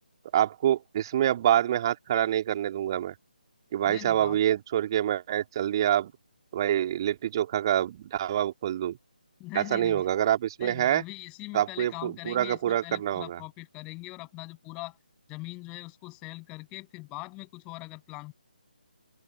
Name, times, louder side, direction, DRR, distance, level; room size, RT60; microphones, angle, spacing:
voice 1, 0.3-3.1 3.7-6.1 6.5-9.0 9.5-11.0 11.5-13.4, right 11 dB, 30° right, 2.6 m, -26 dB
voice 2, 3.9-4.4 9.4-10.1 10.6-15.0 15.3-18.3, left 24 dB, 15° left, 7.3 m, -41 dB
open air
figure-of-eight pair, 145°, 5 cm